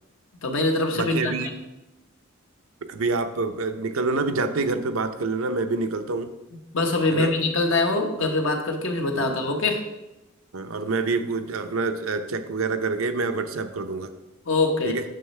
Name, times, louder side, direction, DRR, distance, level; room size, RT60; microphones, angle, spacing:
voice 1, 0.4-1.5 6.7-9.8 14.4-15.0, left 2 dB, 65° left, 3 dB, 1.1 m, -23 dB
voice 2, 0.9-1.5 2.9-6.3 7.1-7.3 10.5-14.1 14.8-15.0, right 3 dB, 80° right, 8 dB, 0.6 m, -27 dB
9.1 x 6.5 x 3.2 m, 0.99 s
head